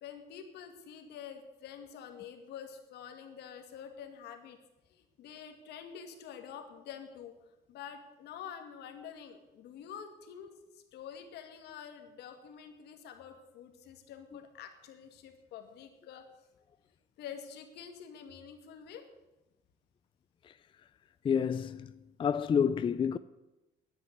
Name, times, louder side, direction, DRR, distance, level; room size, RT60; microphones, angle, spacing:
voice 1, 0.0-4.6 4.9-7.3 7.7-16.3 17.2-19.1, left 8 dB, 80° left, 2.3 m, -47 dB
voice 2, 21.2-21.9 22.2-23.2, left 7 dB, 30° left, 0.4 m, -29 dB
11.0 x 9.8 x 9.6 m
cardioid pair, 110°, 17 cm